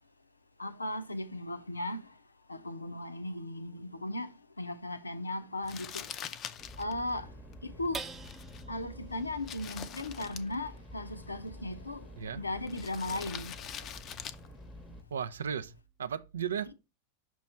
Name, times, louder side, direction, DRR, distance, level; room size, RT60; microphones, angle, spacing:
voice 1, 0.6-2.0 2.5-4.3 4.6-6.0 6.8-7.3 7.6-8.0 8.7-12.0 12.4-13.5, left 1 dB, 80° left, 0.5 m, -36 dB
Crumpling crinkling, 5.6-15.8, left 9 dB, 30° left, 0.5 m, -46 dB
sound 1, 6.6-15.0, equal, 15° left, 0.8 m, -50 dB
sound 2, 7.9-14.6 15.1-15.2 15.6-16.1, right 4 dB, 15° right, 0.7 m, -50 dB
voice 2, 15.1-15.7 16.0-16.7, right 8 dB, 65° right, 0.4 m, -35 dB
6.0 x 3.0 x 5.4 m
figure-of-eight pair, 90°, 0 cm